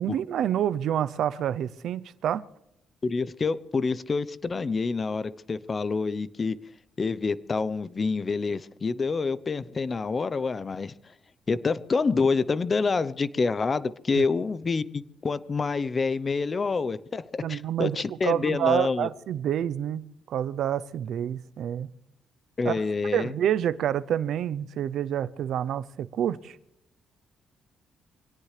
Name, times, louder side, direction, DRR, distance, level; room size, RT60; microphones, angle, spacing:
voice 1, 0.0-2.4 14.2-14.3 17.4-21.9 22.6-22.8 23.1-26.6, right 10 dB, 75° right, 0.6 m, -28 dB
voice 2, 3.0-6.6 7.0-10.9 11.5-19.1 22.6-23.3, left 4 dB, 35° left, 0.8 m, -27 dB
24.5 x 17.5 x 3.3 m
cardioid pair, 90°, 0 cm